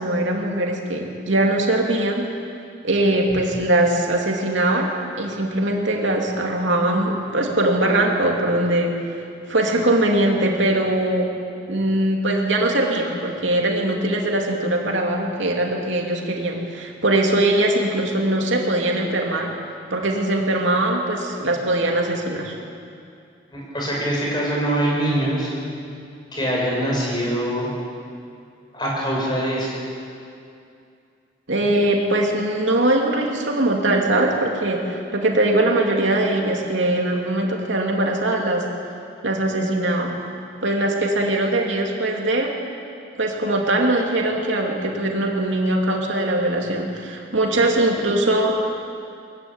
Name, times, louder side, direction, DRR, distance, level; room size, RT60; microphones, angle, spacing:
voice 1, 0.0-2.3 2.8-8.9 9.5-11.3 11.7-19.5 19.9-22.5 31.5-38.7 39.2-40.2 40.6-42.5 43.2-48.8, right 1 dB, 75° right, 0 dB, 2.8 m, -21 dB
voice 2, 23.5-25.5 26.3-27.7 28.7-29.8, right 1 dB, 25° left, -4 dB, 6.9 m, -23 dB
22.5 x 15.5 x 9.1 m, 2.5 s
head